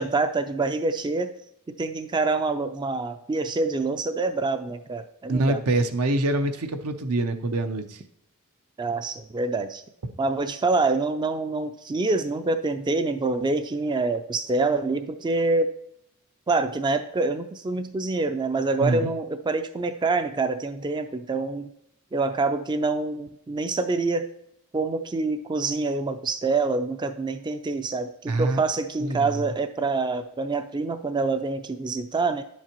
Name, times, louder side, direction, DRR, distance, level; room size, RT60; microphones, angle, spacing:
voice 1, 0.0-1.3 1.8-5.6 8.8-9.8 10.2-15.7 16.5-21.7 22.1-24.3 24.7-32.4, right 3 dB, 20° right, 9 dB, 0.3 m, -26 dB
voice 2, 5.3-8.0 18.8-19.1 28.3-28.6 29.0-29.4, right 2 dB, 75° right, 8 dB, 0.7 m, -25 dB
10.5 x 7.3 x 3.0 m, 0.78 s
head